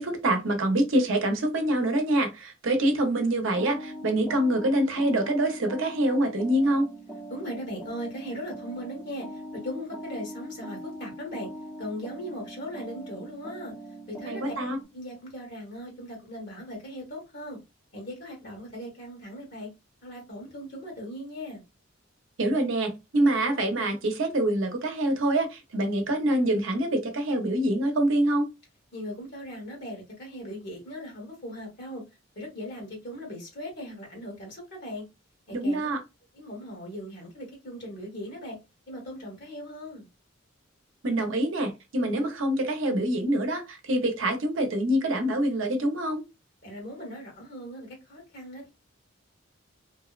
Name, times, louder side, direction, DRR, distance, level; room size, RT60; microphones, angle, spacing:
voice 1, 0.0-6.9 14.3-14.8 22.4-28.5 35.5-36.0 41.0-46.2, right 1 dB, 75° right, 0.6 m, -25 dB
sound 1, 3.6-14.8, equal, 5° left, 0.6 m, -41 dB
voice 2, 7.3-11.5 11.8-13.7 14.1-14.5 14.9-17.6 17.9-19.7 20.0-21.6 28.9-32.0 32.3-35.0 35.5-35.9 36.3-38.6 38.9-40.1 46.6-48.7, equal, 55° left, 1.2 m, -39 dB
2.6 x 2.0 x 2.3 m
head